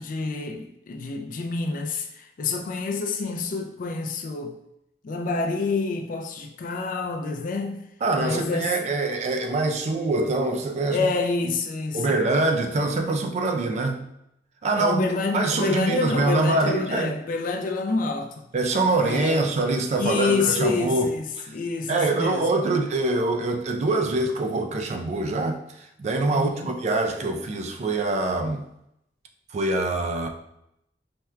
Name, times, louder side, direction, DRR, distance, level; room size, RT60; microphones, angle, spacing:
voice 1, 0.0-4.6 5.0-7.8 8.2-8.9 10.9-12.2 14.8-18.4 19.0-19.5 20.0-22.5 26.3-26.7, left 3 dB, 50° left, 0.3 m, -28 dB
voice 2, 8.0-11.1 11.9-14.0 14.6-15.1 15.3-17.2 18.5-21.1 21.4-21.5 21.9-28.6 29.5-30.3, right 2 dB, 40° right, 0.3 m, -24 dB
4.3 x 2.1 x 2.3 m
head